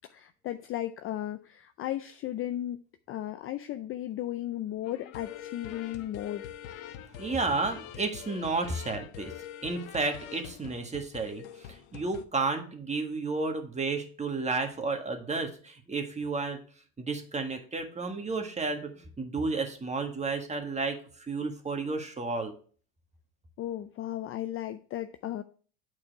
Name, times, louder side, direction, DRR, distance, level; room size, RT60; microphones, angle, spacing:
voice 1, 0.1-2.8 3.1-6.5 23.6-25.4, left 13 dB, 30° left, 10 dB, 0.4 m, -35 dB
sound 1, 4.8-12.2, left 10 dB, 70° left, 1.0 m, -44 dB
voice 2, 7.2-9.3 9.6-11.4 11.7-16.6 17.0-22.5, right 3 dB, 15° right, 5 dB, 1.6 m, -32 dB
8.7 x 4.8 x 4.6 m, 0.42 s
hypercardioid pair, 95°, 43 cm